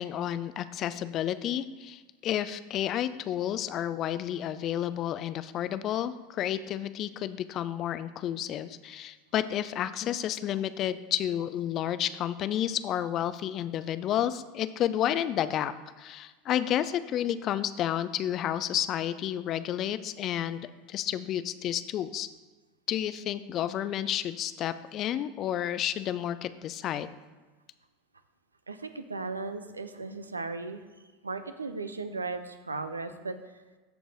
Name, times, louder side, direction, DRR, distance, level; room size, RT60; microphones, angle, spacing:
voice 1, 0.0-22.3 22.9-27.1, left 11 dB, 40° left, 13 dB, 0.5 m, -31 dB
voice 2, 28.7-30.8 31.2-33.6, right 3 dB, 85° right, 10 dB, 0.6 m, -36 dB
13.5 x 4.6 x 4.0 m, 1.3 s
figure-of-eight pair, 80°, 0 cm